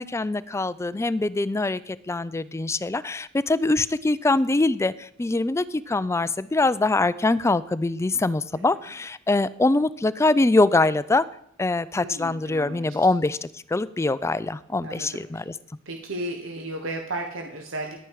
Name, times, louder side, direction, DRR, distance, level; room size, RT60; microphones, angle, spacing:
voice 1, 0.0-11.3 11.6-15.5, left 2 dB, 15° left, 17 dB, 0.3 m, -23 dB
voice 2, 12.0-13.0 14.8-15.4 15.8-18.0, right 2 dB, 75° right, 3 dB, 1.3 m, -34 dB
11.0 x 8.9 x 4.7 m, 0.69 s
head